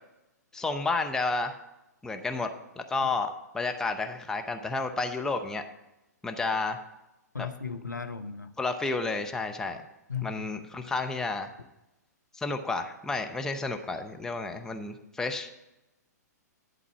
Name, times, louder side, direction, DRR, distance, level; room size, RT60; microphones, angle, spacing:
voice 1, 0.5-1.6 2.0-5.6 6.2-6.8 8.6-9.8 10.2-11.5 12.3-15.5, left 3 dB, 5° left, 5 dB, 0.6 m, -31 dB
voice 2, 7.3-8.6 10.1-10.4, left 6 dB, 85° left, 9 dB, 0.7 m, -36 dB
11.0 x 4.0 x 7.2 m, 0.93 s
figure-of-eight pair, 115°, 9 cm